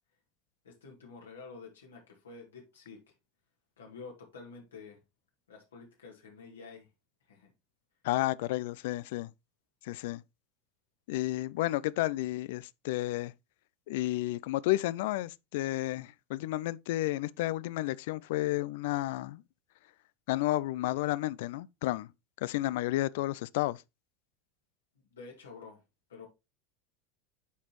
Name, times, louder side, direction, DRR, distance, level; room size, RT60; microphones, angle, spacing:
voice 1, 0.6-3.0 3.8-5.0 5.5-6.9 7.3-7.5 25.1-25.8 26.1-26.3, left 4 dB, 80° left, 2.0 m, -49 dB
voice 2, 8.0-9.3 9.8-10.2 11.1-13.3 13.9-19.4 20.3-22.1 22.4-23.8, left 16 dB, 65° left, 0.3 m, -31 dB
9.2 x 4.1 x 3.1 m
hypercardioid pair, 85°, 0 cm